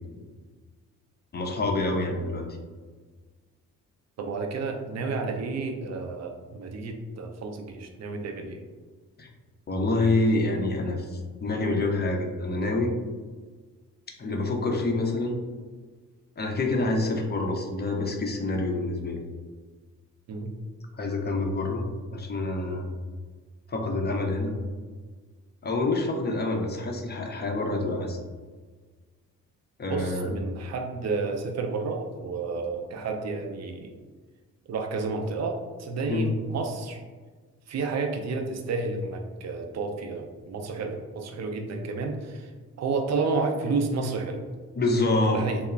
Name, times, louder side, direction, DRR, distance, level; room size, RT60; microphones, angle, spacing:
voice 1, 1.3-2.5 9.2-9.3 9.7-12.9 14.2-15.4 16.4-19.2 21.0-21.8 22.1-22.9 23.7-24.6 25.6-28.2 29.8-30.3 36.1-36.3 44.8-45.4, left 2 dB, 30° left, 2 dB, 0.5 m, -27 dB
voice 2, 4.2-8.6 20.3-20.5 29.9-33.9 34.7-37.0 37.7-42.5 42.8-44.4 45.3-45.6, right 4 dB, 50° right, 3 dB, 0.5 m, -31 dB
2.9 x 2.0 x 2.3 m, 1.4 s
supercardioid pair, 55°, 36 cm